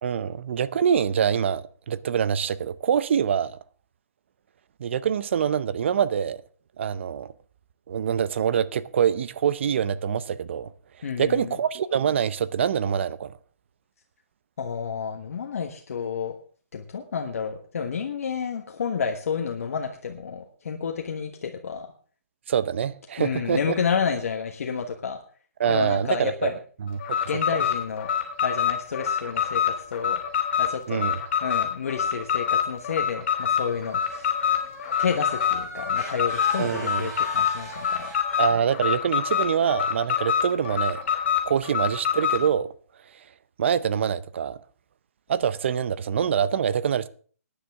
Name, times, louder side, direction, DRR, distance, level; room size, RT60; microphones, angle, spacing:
voice 1, 0.0-3.6 4.8-6.4 6.8-7.3 7.9-10.7 11.2-13.3 22.5-23.6 25.6-26.5 26.9-27.0 30.9-31.2 36.6-37.1 38.4-41.0 41.5-42.7 43.6-44.6 45.3-47.1, right 8 dB, 50° right, 0.6 m, -25 dB
voice 2, 11.0-11.5 14.6-16.3 16.7-21.9 23.2-25.2 25.7-26.5 27.3-28.1 28.4-30.2 30.6-31.1 31.4-34.3 35.0-38.1, left 6 dB, 65° left, 1.3 m, -30 dB
Alarm, 27.0-42.5, left 8 dB, 45° left, 4.4 m, -25 dB
sound 1, 33.4-38.5, right 2 dB, 20° right, 4.3 m, -40 dB
18.0 x 10.0 x 3.6 m
hypercardioid pair, 165°, 8 cm